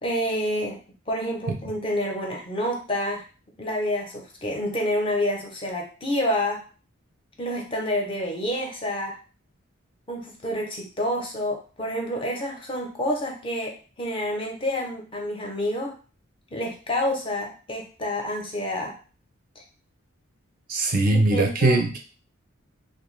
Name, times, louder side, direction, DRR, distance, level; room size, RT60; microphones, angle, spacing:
voice 1, 0.0-0.8 1.1-3.2 3.6-6.6 7.4-9.1 10.1-15.9 16.5-18.9 21.0-21.8, equal, 25° left, 1 dB, 0.5 m, -28 dB
voice 2, 20.7-22.0, right 2 dB, 40° right, 3 dB, 0.4 m, -21 dB
2.5 x 2.2 x 3.0 m, 0.38 s
head